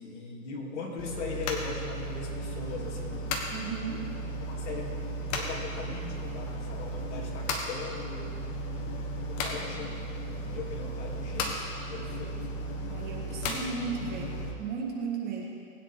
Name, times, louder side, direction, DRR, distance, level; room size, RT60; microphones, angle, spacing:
voice 1, 0.0-3.3 4.4-8.4 9.3-10.1 10.4-12.4, left 3 dB, 55° left, -2 dB, 3.2 m, -39 dB
sound 1, 1.0-14.5, equal, 30° left, 1.6 m, -35 dB
voice 2, 3.5-4.2 12.8-15.4, right 5 dB, 20° right, -1 dB, 1.6 m, -35 dB
20.5 x 9.6 x 3.8 m, 2.4 s
hypercardioid pair, 145°, 41 cm